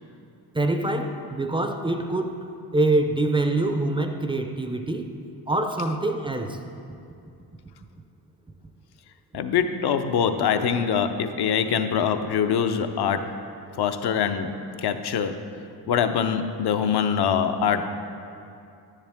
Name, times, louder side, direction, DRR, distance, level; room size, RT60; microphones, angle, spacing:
voice 1, 0.5-2.4 2.7-5.1 5.5-6.6, right 2 dB, 15° right, 5 dB, 0.4 m, -25 dB
voice 2, 9.3-13.3 13.8-15.4 15.9-17.8, left 7 dB, 65° left, 8 dB, 0.7 m, -24 dB
10.0 x 10.0 x 3.5 m, 2.5 s
cardioid pair, 130°, 42 cm